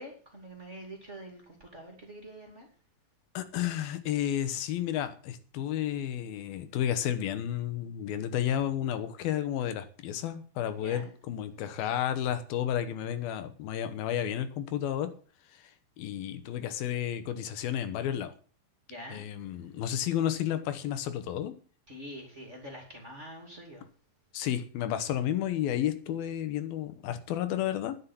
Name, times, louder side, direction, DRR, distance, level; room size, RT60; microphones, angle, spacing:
voice 1, 0.0-2.7 10.8-11.1 18.9-19.3 21.9-23.9, equal, 20° right, 2 dB, 2.3 m, -45 dB
voice 2, 3.3-15.1 15.6-15.7 16.0-18.3 19.1-21.5 24.3-28.0, left 10 dB, 85° left, 10 dB, 3.0 m, -32 dB
10.0 x 7.6 x 8.4 m, 0.40 s
omnidirectional pair, 4.2 m